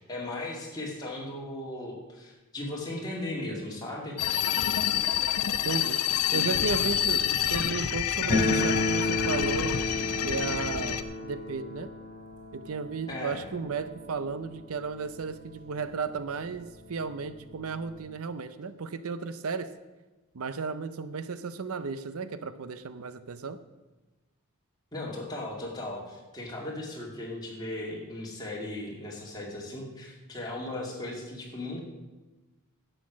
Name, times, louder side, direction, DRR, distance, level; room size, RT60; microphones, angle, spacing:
voice 1, 0.0-4.2 6.1-6.5 13.1-13.4 24.9-31.8, left 1 dB, 20° left, -3 dB, 2.5 m, -37 dB
sound 1, 4.2-11.0, left 9 dB, 90° left, 0.6 m, -28 dB
voice 2, 5.6-6.0 6.3-9.8 10.2-11.9 12.5-19.7 20.3-23.6, right 4 dB, 75° right, 13 dB, 0.6 m, -34 dB
sound 2, 8.3-15.0 15.3-15.4 15.6-15.7 16.5-16.6 16.9-18.0, left 2 dB, 35° left, 2.9 m, -32 dB
11.5 x 8.0 x 6.1 m, 1.1 s
head